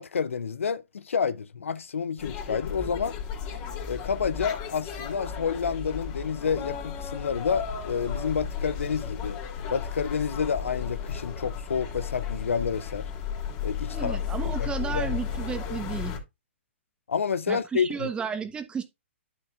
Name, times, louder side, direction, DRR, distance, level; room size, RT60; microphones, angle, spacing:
voice 1, 0.0-3.2 3.8-9.4 9.7-13.1 13.6-15.2 17.1-18.1, left 6 dB, 85° left, 0.5 m, -29 dB
sound 1, 2.2-16.2, left 7 dB, 35° left, 3.0 m, -34 dB
voice 2, 13.9-16.1 17.5-18.8, right 6 dB, 15° right, 1.1 m, -33 dB
11.0 x 6.7 x 2.5 m
hypercardioid pair, 130°, 7 cm